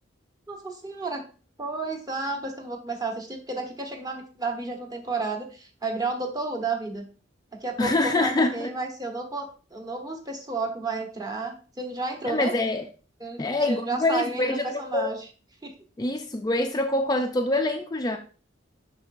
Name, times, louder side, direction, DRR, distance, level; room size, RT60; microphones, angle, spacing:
voice 1, 0.5-1.2 1.6-7.1 7.5-12.5 13.2-15.3 15.6-15.7, right 3 dB, 20° right, 1.0 m, -32 dB
voice 2, 7.8-8.7 12.3-12.9 13.4-14.7 14.9-15.1 16.0-18.2, left 2 dB, 20° left, 0.4 m, -25 dB
6.6 x 6.0 x 2.5 m
head